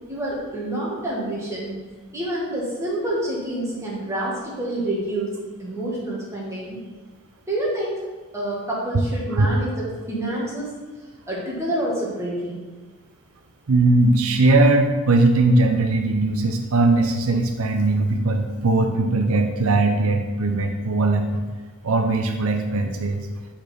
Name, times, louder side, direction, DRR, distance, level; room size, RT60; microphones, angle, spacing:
voice 1, 0.1-1.8 2.1-5.3 5.6-6.8 7.5-8.0 8.3-10.7 11.3-12.6, right 1 dB, 15° right, -6 dB, 1.7 m, -27 dB
voice 2, 13.7-21.4 21.8-23.3, right 2 dB, 85° right, 4 dB, 0.7 m, -19 dB
5.2 x 4.3 x 5.8 m, 1.3 s
head